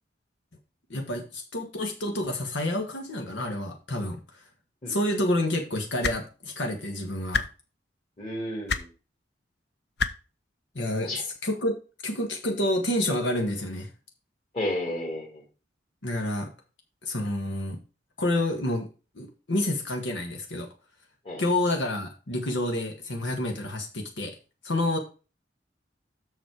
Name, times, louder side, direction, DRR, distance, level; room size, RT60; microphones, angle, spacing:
voice 1, 0.9-4.4 4.9-7.4 10.8-11.8 12.0-13.9 16.0-16.5 17.0-17.8 18.2-18.9 19.2-20.7 21.4-24.4 24.6-25.0, left 1 dB, 80° left, 2 dB, 1.6 m, -29 dB
sound 1, 6.0-6.2 7.3-7.4 8.7-8.8 10.0-10.1 11.3-11.4, left 5 dB, 60° left, 0.7 m, -26 dB
voice 2, 8.2-8.9 11.0-11.2 14.5-15.4 21.3-21.4, left 1 dB, 35° left, -2 dB, 2.1 m, -32 dB
7.2 x 6.5 x 4.8 m, 0.33 s
head